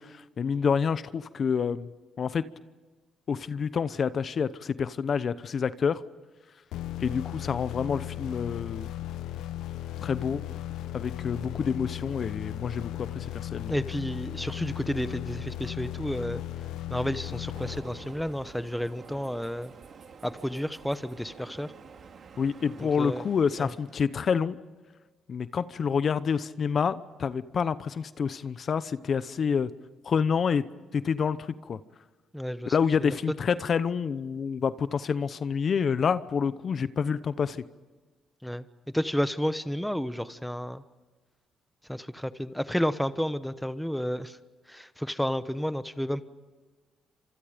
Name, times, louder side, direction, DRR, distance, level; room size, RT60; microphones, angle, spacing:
voice 1, 0.0-1.9 2.2-2.4 3.3-6.0 7.0-8.9 10.0-10.4 10.9-13.7 22.4-24.6 25.3-29.7 30.0-30.6 30.9-31.8 32.7-37.6, left 6 dB, 50° left, 14 dB, 0.9 m, -28 dB
sound 1, 6.7-18.4, left 13 dB, 85° left, 1.0 m, -36 dB
voice 2, 13.7-16.4 16.9-19.7 20.2-21.7 22.8-23.3 23.6-23.7 32.3-32.7 33.0-33.1 38.4-38.6 38.9-40.8 41.9-44.4 44.7-46.2, equal, ahead, 13 dB, 1.1 m, -31 dB
Train, 17.5-24.2, right 5 dB, 55° right, 2.4 m, -49 dB
29.0 x 26.5 x 5.1 m, 1.3 s
cardioid pair, 90°, 0 cm